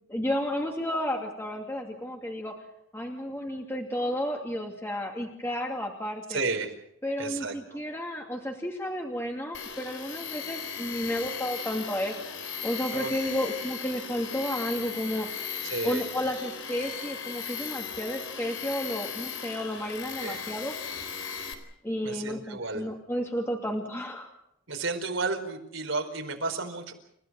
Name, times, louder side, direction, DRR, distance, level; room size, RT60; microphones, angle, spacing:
voice 1, 0.1-2.5 2.9-6.4 7.0-12.1 12.6-15.3 15.8-20.7 21.8-24.3, equal, 10° left, 1 dB, 2.5 m, -32 dB
voice 2, 6.3-6.7 7.2-7.5 12.9-13.3 15.6-16.0 20.2-20.4 22.0-22.8 24.7-26.9, right 3 dB, 75° right, 4 dB, 4.8 m, -32 dB
Tools, 9.5-21.5, left 7 dB, 70° left, 3.9 m, -37 dB
30.0 x 15.5 x 7.7 m, 0.76 s
head